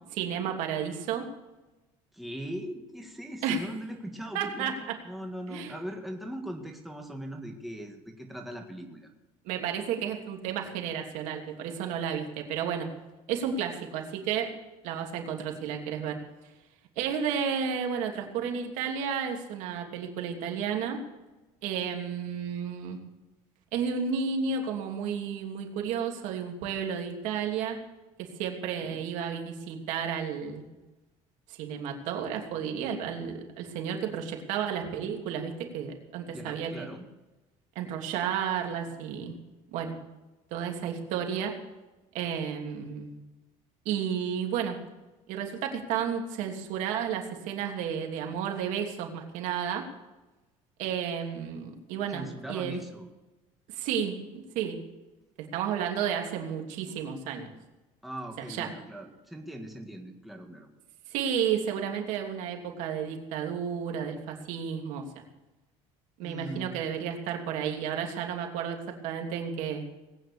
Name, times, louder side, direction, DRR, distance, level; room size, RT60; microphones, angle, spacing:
voice 1, 0.1-1.3 3.4-3.6 4.3-5.0 5.5-5.7 9.4-12.9 13.3-14.5 14.8-16.2 17.0-21.0 21.6-23.0 23.7-27.8 28.2-30.7 31.5-36.9 37.7-39.3 39.7-39.9 40.5-41.5 42.1-43.2 43.8-44.8 45.3-49.9 50.8-52.8 53.7-54.8 55.4-57.5 58.4-58.7 61.1-65.0 66.2-69.8, right 7 dB, 75° right, 3 dB, 2.9 m, -32 dB
voice 2, 2.1-9.1 28.8-29.0 36.3-37.1 52.1-53.1 58.0-60.7 66.2-66.8, equal, ahead, 2 dB, 1.9 m, -40 dB
19.5 x 9.2 x 7.0 m, 1.1 s
cardioid pair, 140°, 13 cm